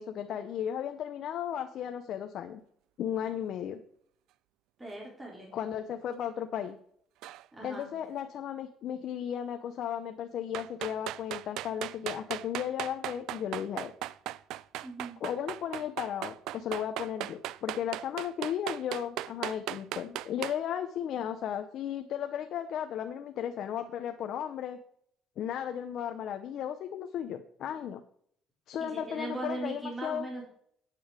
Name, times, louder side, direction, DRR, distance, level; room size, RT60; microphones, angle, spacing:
voice 1, 0.0-2.6 3.0-3.8 5.5-6.8 7.6-13.9 15.2-24.8 25.4-28.0 28.7-30.3, left 9 dB, 65° left, 6 dB, 0.7 m, -35 dB
voice 2, 4.8-5.5 7.5-7.9 14.8-15.2 28.8-30.4, right 2 dB, 15° right, -3 dB, 4.3 m, -39 dB
sound 1, 7.2-7.4 10.5-20.6, right 14 dB, 80° right, 0.3 m, -37 dB
9.2 x 7.2 x 5.0 m, 0.65 s
cardioid pair, 105°, 0 cm